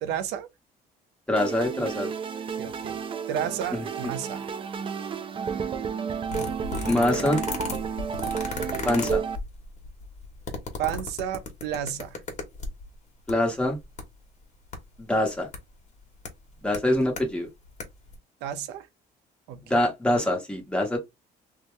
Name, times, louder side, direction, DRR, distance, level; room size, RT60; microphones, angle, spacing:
voice 1, 0.0-0.5 2.6-3.0 3.3-4.5 10.8-12.2 18.4-18.9 19.5-19.9, right 10 dB, 90° right, 0.5 m, -32 dB
voice 2, 1.3-2.1 3.7-4.1 6.9-7.4 8.8-9.2 13.3-13.8 15.0-15.5 16.6-17.5 19.7-21.0, left 1 dB, 5° left, 1.1 m, -24 dB
sound 1, 1.4-9.4, right 6 dB, 30° right, 0.4 m, -31 dB
sound 2, 6.3-12.9 13.3-13.4 13.6-14.0 14.7-14.8 15.5-15.6 16.3-16.4 16.7-17.2 17.6-17.8 18.1-18.2, left 4 dB, 45° left, 1.1 m, -34 dB
2.7 x 2.2 x 3.1 m
cardioid pair, 110°, 17 cm